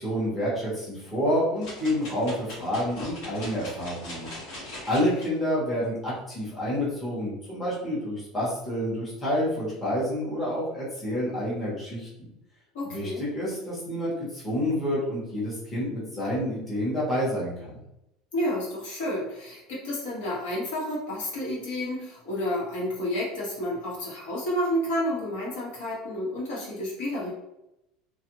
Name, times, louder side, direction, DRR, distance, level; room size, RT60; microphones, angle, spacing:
voice 1, 0.0-4.3 4.9-12.1 12.8-17.8, equal, 15° left, -8 dB, 0.9 m, -28 dB
sound 1, 1.6-5.3 5.8-5.9, left 1 dB, 55° left, 1.2 m, -40 dB
voice 2, 12.7-13.2 18.3-27.3, left 1 dB, 85° left, -5 dB, 1.3 m, -30 dB
2.5 x 2.4 x 2.9 m, 0.87 s
cardioid pair, 175°, 0 cm